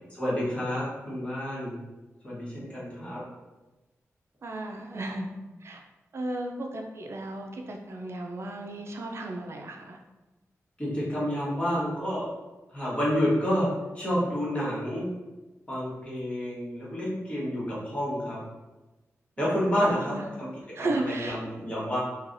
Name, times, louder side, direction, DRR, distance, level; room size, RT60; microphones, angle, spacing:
voice 1, 0.1-1.7 2.2-3.2 10.8-12.3 12.7-13.7 13.9-15.1 15.7-18.4 19.4-20.5 20.8-22.0, equal, 20° left, -7 dB, 1.2 m, -29 dB
voice 2, 4.4-5.3 5.6-5.8 6.1-10.0 19.4-19.5 19.8-20.3 20.7-21.4, right 2 dB, 55° right, 2 dB, 0.4 m, -34 dB
3.2 x 2.3 x 2.5 m, 1.1 s
wide cardioid pair, 90°, 5 cm